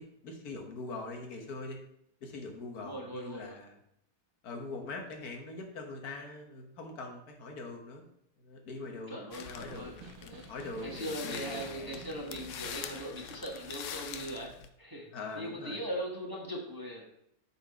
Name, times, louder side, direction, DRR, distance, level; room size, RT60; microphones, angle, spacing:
voice 1, 0.0-1.8 2.2-3.8 4.4-8.0 8.4-12.0 12.3-12.4 15.1-15.9, left 3 dB, 85° left, 3 dB, 1.6 m, -43 dB
voice 2, 2.8-3.6 9.1-10.5 10.8-14.5 14.8-17.1, right 1 dB, 15° right, -2 dB, 1.2 m, -40 dB
Snare drum, 9.2-13.1, right 4 dB, 70° right, 1.1 m, -53 dB
sound 1, 9.3-14.7, left 8 dB, 65° left, 0.9 m, -44 dB
7.8 x 4.3 x 4.8 m, 0.76 s
omnidirectional pair, 1.6 m